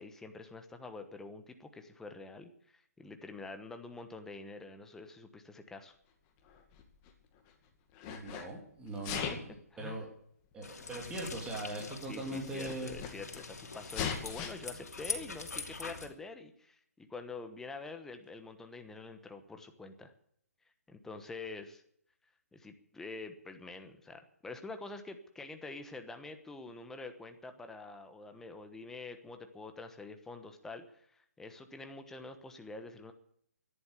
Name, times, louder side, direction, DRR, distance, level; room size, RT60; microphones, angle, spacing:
voice 1, 0.0-5.9 9.0-9.1 9.7-10.0 12.0-20.1 20.6-21.8 22.5-33.1, left 3 dB, 5° left, 7 dB, 1.1 m, -46 dB
Sneeze, 6.5-7.5 7.9-8.5 9.0-9.6 10.5-10.6 11.5-11.6 11.8-11.9 12.3-13.4 13.9-14.5, left 7 dB, 25° left, 2.2 m, -39 dB
voice 2, 8.0-9.4 9.8-10.1 10.5-12.9, right 1 dB, 10° right, -2 dB, 3.2 m, -40 dB
sound 1, 10.6-16.1, left 4 dB, 75° left, 2.7 m, -43 dB
14.0 x 11.0 x 8.3 m, 0.66 s
hypercardioid pair, 145°, 9 cm